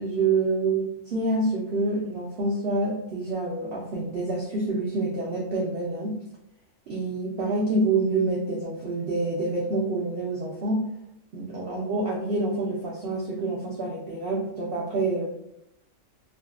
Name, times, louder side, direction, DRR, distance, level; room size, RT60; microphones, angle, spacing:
voice 1, 0.0-6.2 6.9-10.8 11.3-15.2, right 2 dB, 60° right, -4 dB, 0.6 m, -27 dB
2.6 x 2.3 x 2.2 m, 0.80 s
omnidirectional pair, 1.4 m